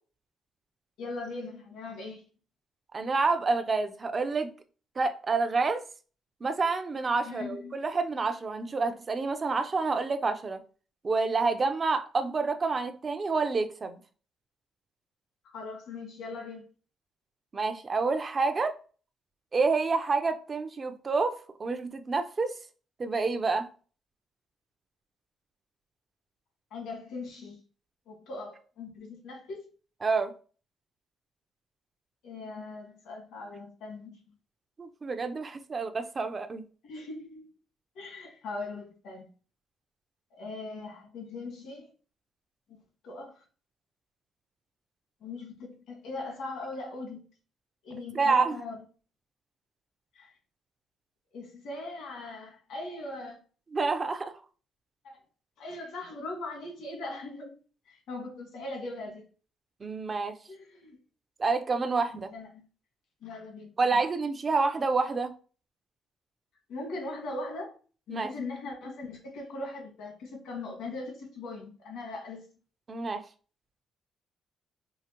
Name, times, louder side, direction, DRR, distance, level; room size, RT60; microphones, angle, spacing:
voice 1, 1.0-2.2 7.2-7.8 15.5-16.6 26.7-27.6 28.1-29.7 32.2-34.1 36.8-37.4 37.9-39.3 40.4-41.9 42.7-42.8 43.0-43.3 45.2-47.2 47.8-48.8 50.1-50.3 51.3-53.4 55.0-55.1 55.6-57.5 57.9-59.2 60.5-61.0 62.1-62.6 63.2-64.0 66.7-67.7 68.1-72.4, left 2 dB, 85° left, 1.6 m, -40 dB
voice 2, 2.9-4.5 5.0-5.8 6.4-10.6 11.0-14.0 17.5-18.7 19.5-22.6 23.0-23.7 30.0-30.3 34.8-36.6 48.1-48.6 53.7-54.4 59.8-60.3 61.4-62.3 63.8-65.3 68.1-68.3 72.9-73.2, right 4 dB, 35° right, 0.5 m, -28 dB
4.8 x 2.4 x 2.9 m
cardioid pair, 90°, 0 cm